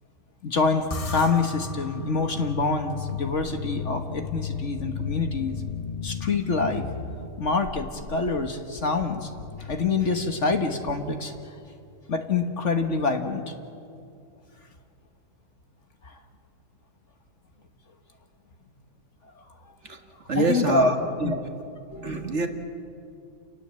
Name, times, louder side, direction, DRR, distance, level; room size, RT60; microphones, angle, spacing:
voice 1, 0.4-5.6 6.0-6.9 7.4-9.3 9.6-11.3 12.1-13.5 16.0-16.2 20.3-20.9 21.2-21.3, left 4 dB, 50° left, 5 dB, 1.6 m, -26 dB
sound 1, 0.9-11.5, left 5 dB, 25° left, 0.9 m, -35 dB
voice 2, 20.3-21.4 21.9-22.5, right 3 dB, 45° right, 5 dB, 1.9 m, -26 dB
29.5 x 19.0 x 7.7 m, 2.5 s
omnidirectional pair, 1.7 m